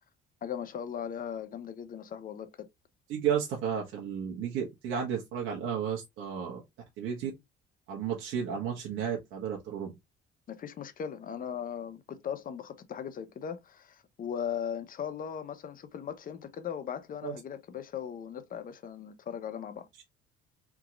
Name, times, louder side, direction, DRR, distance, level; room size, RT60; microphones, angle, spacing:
voice 1, 0.4-2.7 10.5-19.9, left 8 dB, 45° left, 0.8 m, -38 dB
voice 2, 3.1-6.6 7.0-7.3 7.9-9.9 17.2-17.3, right 8 dB, 80° right, 1.3 m, -33 dB
3.7 x 2.9 x 3.7 m
cardioid pair, 100°, 20 cm